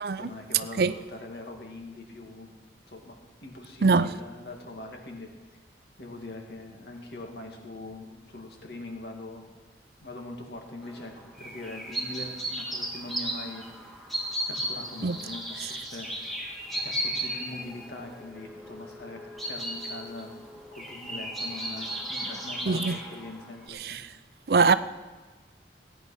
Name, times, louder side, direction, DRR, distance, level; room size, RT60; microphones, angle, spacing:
voice 1, 0.2-2.5 2.9-3.2 3.4-5.3 6.0-9.5 10.0-11.1 11.4-13.6 14.5-16.4 16.7-20.4 20.8-24.0, left 2 dB, 65° left, 2.2 m, -42 dB
sound 1, 10.8-23.7, right 1 dB, ahead, 1.8 m, -35 dB
voice 2, 22.7-23.0 23.8-24.0 24.5-24.7, right 4 dB, 60° right, 0.5 m, -22 dB
17.0 x 9.4 x 5.6 m
head